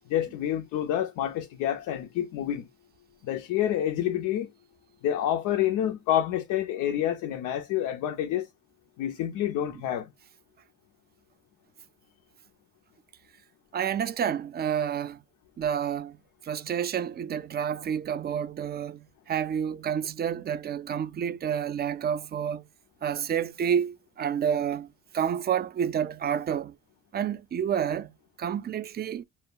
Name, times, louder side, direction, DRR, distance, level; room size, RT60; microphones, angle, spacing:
voice 1, 0.1-2.7 3.2-4.5 5.0-8.5 9.0-10.1, left 11 dB, 85° left, 0.4 m, -28 dB
voice 2, 13.7-15.2 15.6-16.2 16.5-22.6 23.0-24.9 25.1-26.7 27.1-28.1 28.4-29.2, right 8 dB, 35° right, 0.4 m, -29 dB
2.1 x 2.0 x 3.6 m
cardioid pair, 90°, 30 cm